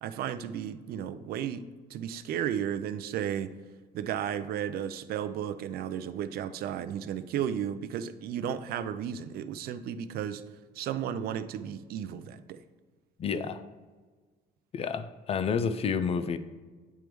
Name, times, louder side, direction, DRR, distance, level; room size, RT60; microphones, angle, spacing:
voice 1, 0.0-3.5 3.9-10.4 10.8-12.6, right 9 dB, 65° right, 12 dB, 0.4 m, -34 dB
voice 2, 13.2-13.6 14.7-16.4, left 6 dB, 35° left, 11 dB, 0.4 m, -29 dB
9.0 x 3.4 x 3.1 m, 1.4 s
cardioid pair, 110°, 17 cm